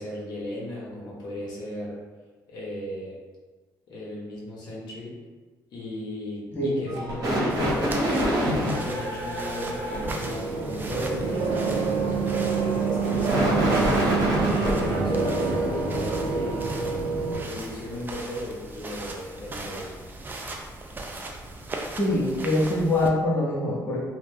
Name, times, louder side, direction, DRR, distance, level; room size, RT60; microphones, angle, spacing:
voice 1, 0.0-2.0 2.5-3.2 3.9-5.2 5.7-8.0 8.7-14.1 14.4-16.7 17.4-20.0, left 1 dB, 65° left, -5 dB, 0.7 m, -36 dB
sound 1, 6.9-10.1 12.9-15.0, equal, 55° right, 0.9 m, -26 dB
sound 2, 7.5-23.1, right 2 dB, 25° right, 0.3 m, -39 dB
sound 3, 10.0-17.4, right 4 dB, 85° right, 0.5 m, -26 dB
voice 2, 22.0-24.0, left 1 dB, 25° left, -6 dB, 0.6 m, -24 dB
2.4 x 2.1 x 3.2 m, 1.3 s
cardioid pair, 105°, 8 cm